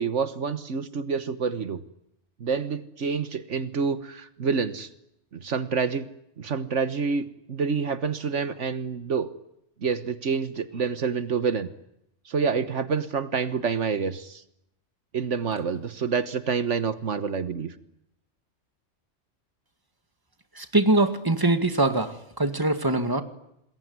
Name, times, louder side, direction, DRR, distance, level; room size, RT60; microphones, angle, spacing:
voice 1, 0.0-1.8 2.4-4.9 5.3-6.1 6.4-9.3 9.8-11.7 12.3-14.4 15.1-17.7, right 5 dB, 70° right, 13 dB, 1.6 m, -27 dB
voice 2, 20.6-23.2, right 2 dB, 15° right, 9 dB, 2.1 m, -23 dB
27.5 x 21.0 x 9.6 m, 0.80 s
omnidirectional pair, 1.3 m